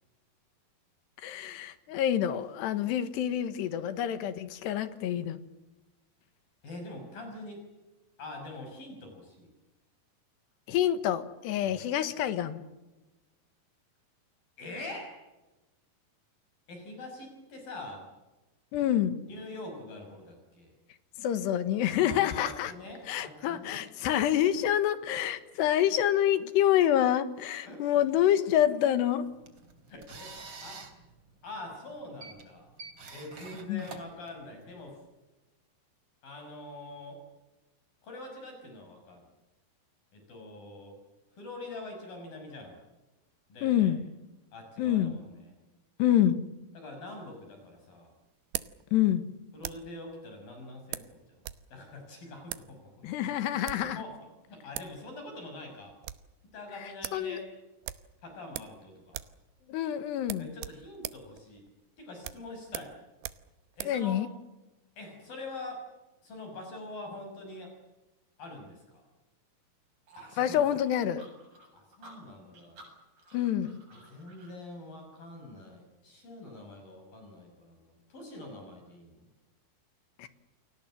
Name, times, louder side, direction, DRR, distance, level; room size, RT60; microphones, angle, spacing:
voice 1, 1.2-5.4 10.7-12.6 18.7-19.2 21.2-22.7 23.1-29.3 33.7-33.9 43.6-44.0 44.8-45.2 46.0-46.4 48.9-49.3 53.0-54.0 56.7-57.4 59.7-60.5 63.9-64.3 70.4-71.3 73.3-73.8 80.2-80.3, left 11 dB, 85° left, 12 dB, 3.6 m, -27 dB
voice 2, 6.6-7.7 8.2-9.5 11.6-11.8 14.6-15.2 16.7-18.1 19.3-20.7 21.9-23.8 27.6-27.9 29.9-30.3 30.6-30.9 31.4-32.7 33.1-35.0 36.2-37.2 38.0-39.2 40.1-41.0 41.4-42.8 43.5-43.9 44.5-45.5 46.8-48.1 49.5-51.4 51.7-53.7 54.0-54.1 54.5-55.9 56.5-57.5 58.2-59.2 60.4-61.6 62.0-63.0 63.8-64.2 65.0-65.9 66.2-67.7 68.4-69.0 70.2-70.6 71.7-72.8 73.9-79.3, left 2 dB, 55° left, 3 dB, 7.7 m, -44 dB
sound 1, 29.2-34.9, right 4 dB, 35° right, 3.5 m, -48 dB
sound 2, 47.1-50.0 50.9-51.7 51.9-52.0 52.4-52.7 53.5-53.9 54.5-54.6 54.7-55.0 55.3-55.4 55.7-56.3 56.7-56.8 57.0-57.3 57.8-58.8 59.1-59.4 59.7-59.8 60.2-64.0, right 15 dB, 85° right, 3.1 m, -41 dB
sound 3, 70.1-74.6, right 1 dB, 55° right, 8.8 m, -54 dB
29.5 x 21.0 x 7.5 m, 1.1 s
omnidirectional pair, 4.8 m